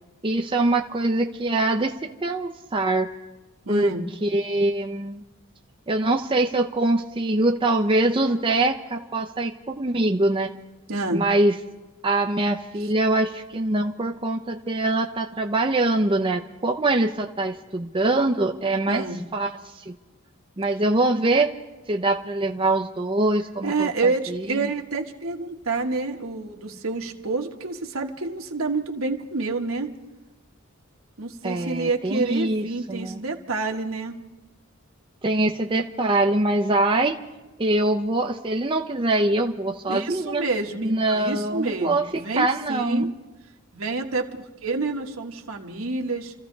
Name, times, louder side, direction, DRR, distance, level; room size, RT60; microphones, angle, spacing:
voice 1, 0.2-3.1 3.7-3.9 4.2-5.2 5.9-10.5 11.1-11.5 12.0-19.0 19.3-19.9 20.6-21.5 21.9-23.9 24.3-24.5 31.4-33.2 35.2-37.2 37.6-40.4 40.8-42.1 42.4-43.1, right 2 dB, 25° right, 2 dB, 0.7 m, -23 dB
voice 2, 3.6-4.0 10.9-11.2 18.9-19.2 23.6-29.9 31.2-34.2 39.9-43.1 43.7-46.3, right 3 dB, 70° right, 2 dB, 1.5 m, -28 dB
28.5 x 14.5 x 3.3 m, 1.2 s
head